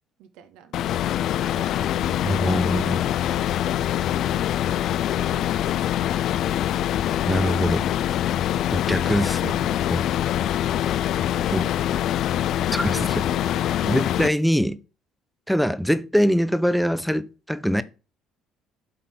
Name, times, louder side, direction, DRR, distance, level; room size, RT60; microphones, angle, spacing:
voice 1, 0.2-4.8 5.1-6.2 10.9-12.4 12.8-13.7, right 8 dB, 85° right, 1.2 m, -48 dB
sound 1, 0.7-14.3, left 11 dB, 60° left, 0.3 m, -24 dB
voice 2, 2.2-3.1 7.3-7.9 8.7-10.1 11.5-11.7 12.7-13.0 13.9-14.8 15.5-17.8, equal, ahead, 0.6 m, -23 dB
7.7 x 3.9 x 5.8 m
cardioid pair, 120°, 0 cm